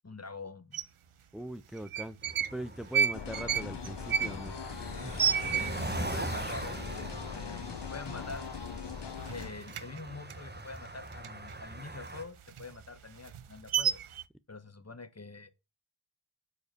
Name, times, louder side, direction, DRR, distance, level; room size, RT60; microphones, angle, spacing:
voice 1, 0.0-0.8 5.4-8.5 9.3-14.0 14.5-15.5, left 3 dB, 30° left, 1.3 m, -45 dB
sound 1, 0.7-0.8 1.8-2.6 2.9-6.1 6.4-6.5 6.8-7.3 7.7-7.8 8.1-8.9 9.2-11.6 11.9-14.2, right 8 dB, 75° right, 0.8 m, -31 dB
voice 2, 1.3-2.2 2.5-5.2, right 1 dB, ahead, 0.4 m, -41 dB
sound 2, 2.2-12.2, right 2 dB, 20° right, 1.1 m, -41 dB
sound 3, 3.1-9.5, left 7 dB, 55° left, 0.8 m, -41 dB
9.2 x 5.0 x 6.6 m
wide cardioid pair, 75°, 50 cm